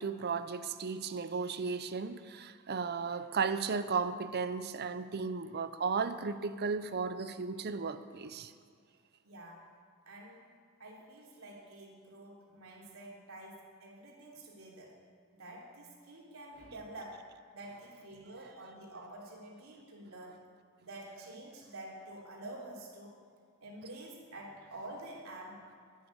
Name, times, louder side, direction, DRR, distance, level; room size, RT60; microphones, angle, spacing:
voice 1, 0.0-8.5, right 5 dB, 50° right, 0.7 m, -35 dB
voice 2, 9.2-9.7 10.0-10.5 10.8-15.0 15.3-17.2 17.5-20.4 20.8-23.2 23.6-25.7, right 1 dB, 80° right, 3.2 m, -48 dB
11.5 x 9.5 x 9.5 m
head